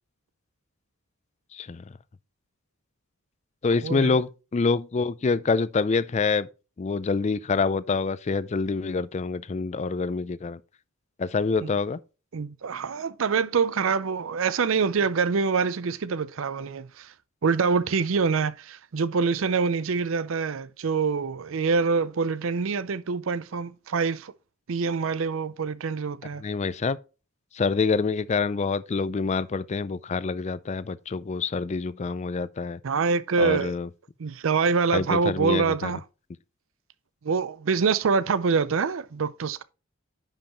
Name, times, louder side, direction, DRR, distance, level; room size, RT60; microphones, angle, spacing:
voice 1, 1.5-1.8 3.6-6.5 6.8-10.6 11.2-12.0 26.4-27.0 27.5-32.8 33.4-33.9 34.9-35.9, left 4 dB, 30° left, 0.3 m, -26 dB
voice 2, 3.8-4.2 11.6-11.7 12.3-17.1 17.4-24.3 24.7-26.4 32.8-33.8 34.2-36.0 37.2-39.6, right 5 dB, 70° right, 0.5 m, -25 dB
10.0 x 5.4 x 3.0 m
head